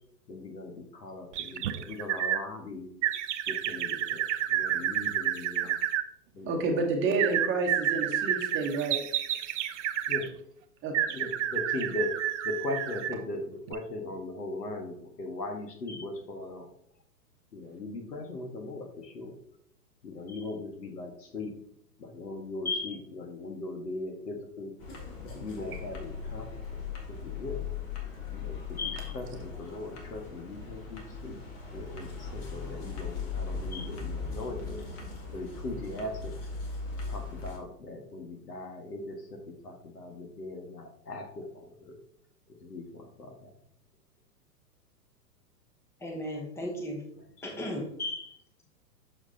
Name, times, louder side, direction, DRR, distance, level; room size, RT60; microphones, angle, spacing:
voice 1, 0.3-2.9 3.5-5.8 6.3-6.8 10.1-10.3 11.1-12.1 12.4-16.7 17.5-19.3 20.0-21.5 22.0-24.7 25.2-26.8 27.1-27.6 28.3-31.4 31.7-34.8 35.3-36.3 37.1-42.0 42.5-43.5 47.5-47.7, left 2 dB, 75° left, 3 dB, 1.8 m, -39 dB
sound 1, 1.3-2.4 3.0-6.0 7.2-10.3 10.9-13.2 13.7-13.8, right 11 dB, 50° right, 0.6 m, -30 dB
voice 2, 6.5-9.1 10.8-10.9, right 3 dB, 25° right, 3 dB, 1.2 m, -29 dB
sound 2, 24.8-37.6, left 5 dB, 35° left, 1.7 m, -39 dB
voice 3, 28.8-29.1 33.7-33.8 46.0-47.1 47.4-48.3, left 2 dB, 5° left, 1 dB, 1.0 m, -35 dB
7.3 x 6.4 x 2.8 m, 0.69 s
figure-of-eight pair, 110°, 49 cm